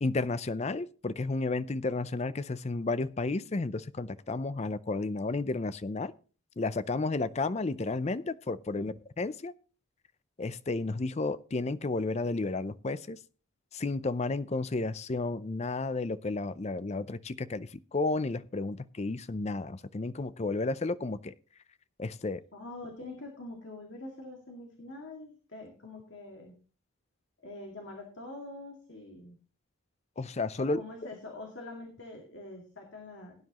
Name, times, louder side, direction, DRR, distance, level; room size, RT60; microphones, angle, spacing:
voice 1, 0.0-6.1 6.6-9.5 10.4-13.2 13.7-21.3 22.0-22.4 30.2-30.8, left 3 dB, 30° left, 15 dB, 0.4 m, -32 dB
voice 2, 22.5-26.5 27.4-29.4 30.6-33.3, left 2 dB, 55° left, 1 dB, 2.2 m, -45 dB
17.5 x 9.7 x 3.0 m, 0.37 s
head